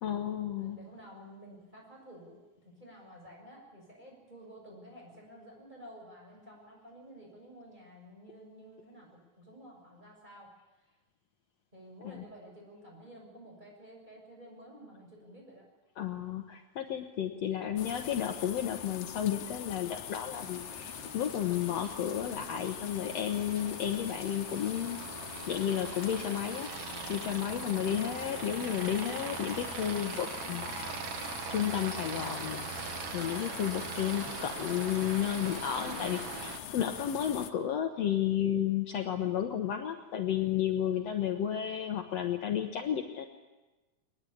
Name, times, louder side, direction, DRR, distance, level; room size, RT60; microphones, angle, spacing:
voice 1, 0.0-0.8 12.0-12.2 16.0-25.0 25.5-26.7 27.1-43.3, left 10 dB, 65° left, 4 dB, 2.1 m, -32 dB
voice 2, 0.6-2.4 2.6-10.5 11.7-15.7 17.4-17.8 38.9-39.3 41.0-41.7, equal, 15° right, -1 dB, 7.1 m, -52 dB
sound 1, 17.8-37.5, left 10 dB, 85° left, 2.5 m, -43 dB
Aircraft, 20.3-36.6, right 7 dB, 60° right, 2.0 m, -42 dB
23.0 x 20.5 x 8.7 m, 1.2 s
omnidirectional pair, 3.5 m